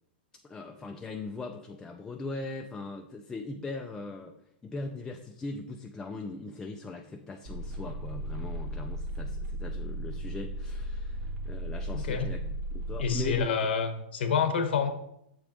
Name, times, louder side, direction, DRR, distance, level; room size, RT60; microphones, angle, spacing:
voice 1, 0.4-4.4 4.6-12.4 12.7-13.4, left 3 dB, 10° left, 2 dB, 0.4 m, -40 dB
sound 1, 7.5-13.4, right 1 dB, 60° right, 1.3 m, -35 dB
voice 2, 11.9-12.3 13.0-14.9, left 6 dB, 80° left, 7 dB, 1.0 m, -28 dB
7.1 x 4.9 x 3.0 m, 0.77 s
hypercardioid pair, 150°, 6 cm